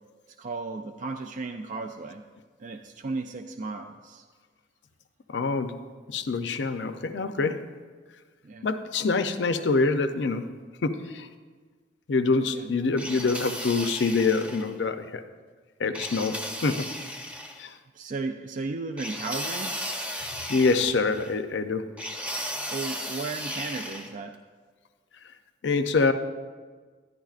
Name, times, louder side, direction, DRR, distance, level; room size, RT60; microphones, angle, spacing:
voice 1, 0.4-2.2 2.6-4.2 8.4-8.7 12.5-12.7 17.9-19.8 22.7-24.4, right 3 dB, 45° right, 6 dB, 0.3 m, -35 dB
voice 2, 5.3-5.8 6.1-7.7 8.6-10.6 10.8-11.3 12.1-15.2 15.8-16.9 17.6-17.7 20.2-21.9 25.6-26.1, left 4 dB, 85° left, 10 dB, 0.5 m, -26 dB
sound 1, 13.0-14.7 15.9-17.6 19.0-21.3 22.0-24.1, equal, 5° right, 0.9 m, -35 dB
11.0 x 10.5 x 2.4 m, 1.5 s
head